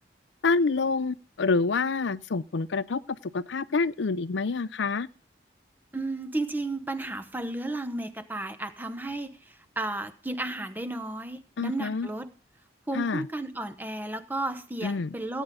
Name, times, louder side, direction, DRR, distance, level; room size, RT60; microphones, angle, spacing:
voice 1, 0.4-3.0 3.3-5.1 11.6-12.1 12.9-13.3 14.8-15.1, left 4 dB, 80° left, 0.6 m, -27 dB
voice 2, 5.9-12.3 12.9-15.4, right 2 dB, 10° right, 0.9 m, -33 dB
17.0 x 9.2 x 3.8 m
head